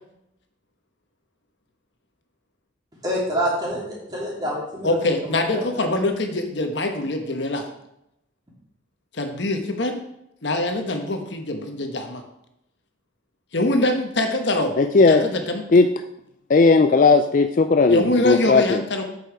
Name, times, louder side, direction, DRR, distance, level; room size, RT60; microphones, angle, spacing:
voice 1, 3.0-6.0, equal, 20° right, -4 dB, 2.9 m, -28 dB
voice 2, 4.8-7.6 9.1-10.0 10.4-12.2 13.5-14.7 15.0-15.6 17.9-19.0, left 2 dB, 60° left, 5 dB, 1.1 m, -23 dB
voice 3, 14.8-15.3 15.7-15.9 16.5-18.8, left 4 dB, 40° left, 8 dB, 0.4 m, -16 dB
8.5 x 6.9 x 4.6 m, 0.80 s
head